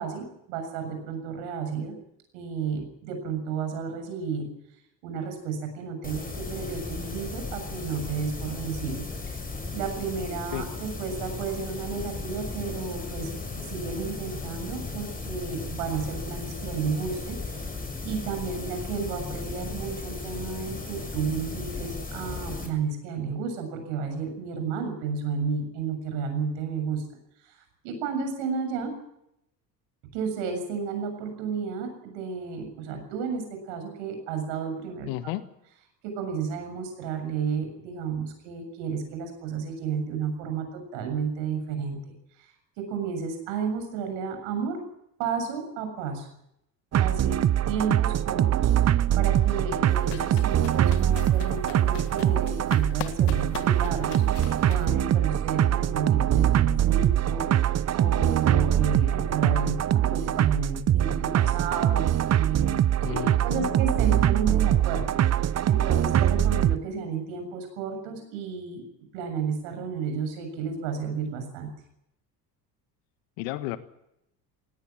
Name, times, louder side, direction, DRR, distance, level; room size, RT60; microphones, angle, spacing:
voice 1, 0.0-1.9 2.3-4.5 5.0-9.0 9.7-17.4 18.0-27.0 27.4-28.9 30.1-35.3 36.0-42.1 42.9-44.8 45.2-46.3 47.0-47.4 47.7-48.7 49.2-57.5 57.9-65.1 65.7-68.8 69.1-71.7, right 6 dB, 70° right, 6 dB, 7.3 m, -32 dB
sound 1, 6.0-22.7, left 3 dB, 15° left, 6.6 m, -36 dB
voice 2, 35.1-35.4 63.0-63.7 73.4-73.8, left 15 dB, 70° left, 12 dB, 1.7 m, -32 dB
sound 2, 46.9-66.8, right 11 dB, 30° right, 0.8 m, -23 dB
sound 3, 49.9-54.9, left 12 dB, 55° left, 1.8 m, -40 dB
18.5 x 17.5 x 8.8 m, 0.80 s
hypercardioid pair, 65°, 50 cm